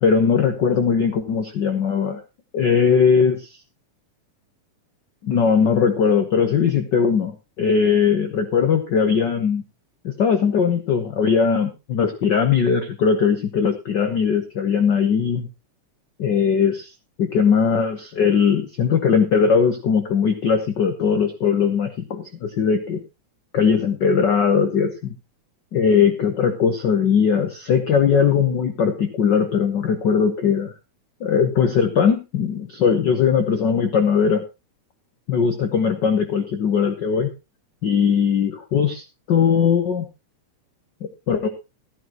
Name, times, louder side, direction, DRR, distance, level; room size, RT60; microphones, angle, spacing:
voice 1, 0.0-2.2 2.5-3.6 5.2-9.6 10.0-15.5 16.2-16.9 17.2-23.0 23.5-25.1 25.7-30.7 31.2-34.4 35.3-37.3 37.8-40.0 41.3-41.5, left 6 dB, 80° left, 6 dB, 0.9 m, -19 dB
14.5 x 11.0 x 3.0 m, 0.26 s
omnidirectional pair, 3.6 m